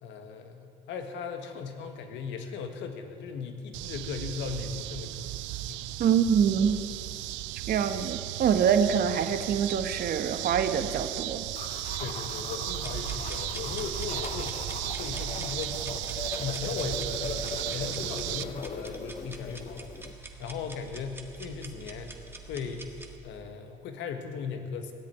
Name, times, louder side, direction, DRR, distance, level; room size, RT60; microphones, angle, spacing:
voice 1, 0.0-5.3 5.7-5.8 12.0-14.6 15.0-16.1 16.4-22.1 22.5-22.9 23.2-24.9, left 5 dB, 80° left, 6 dB, 1.7 m, -38 dB
sound 1, 3.7-18.4, right 16 dB, 85° right, 0.5 m, -35 dB
voice 2, 6.0-6.8 7.7-11.4, right 7 dB, 55° right, 9 dB, 1.2 m, -25 dB
sound 2, 11.5-20.1, left 5 dB, 35° left, 1.1 m, -40 dB
sound 3, 12.8-23.2, right 2 dB, 10° right, 1.5 m, -45 dB
17.0 x 7.8 x 9.6 m, 2.4 s
cardioid pair, 95°, 19 cm